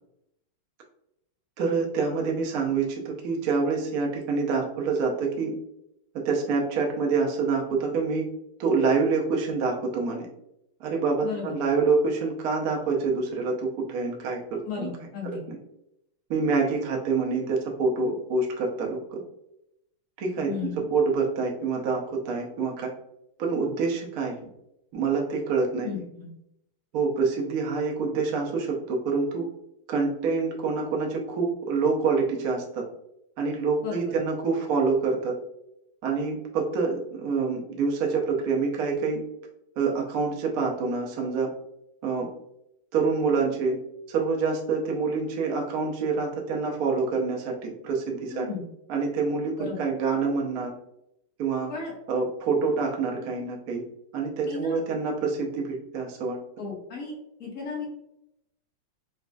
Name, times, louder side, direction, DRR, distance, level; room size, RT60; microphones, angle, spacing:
voice 1, 1.6-5.5 6.2-8.2 8.6-10.3 10.8-14.9 15.2-15.6 16.3-19.2 20.2-20.5 20.8-22.9 23.4-24.4 24.9-26.0 26.9-29.5 29.9-32.8 33.4-35.4 36.0-39.2 39.8-41.5 42.0-42.3 42.9-43.8 44.1-48.5 48.9-50.7 51.4-51.7 52.1-53.8 54.1-56.4, right 4 dB, 75° right, 0 dB, 0.8 m, -26 dB
voice 2, 11.2-11.5 14.7-15.4 20.5-20.8 25.8-26.3 33.8-34.1 48.3-48.6 49.6-49.8 51.7-51.9 54.4-54.8 56.6-57.9, left 5 dB, 60° left, -3 dB, 1.0 m, -35 dB
4.0 x 2.3 x 2.5 m, 0.81 s
omnidirectional pair, 2.4 m